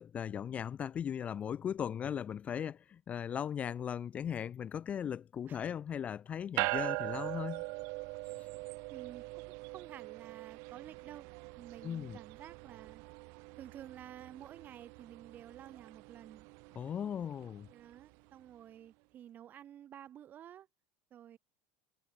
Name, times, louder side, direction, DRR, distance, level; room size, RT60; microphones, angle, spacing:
voice 1, 0.0-7.6 8.3-8.5 11.8-12.2 16.8-17.7, left 8 dB, 25° left, 0.3 m, -38 dB
sound 1, 6.6-18.2, right 32 dB, 65° right, 1.3 m, -42 dB
voice 2, 8.9-11.3 11.6-13.0 13.6-16.5 17.7-20.7 21.1-21.4, right 10 dB, 35° right, 2.6 m, -52 dB
supercardioid pair, 125°, 5 cm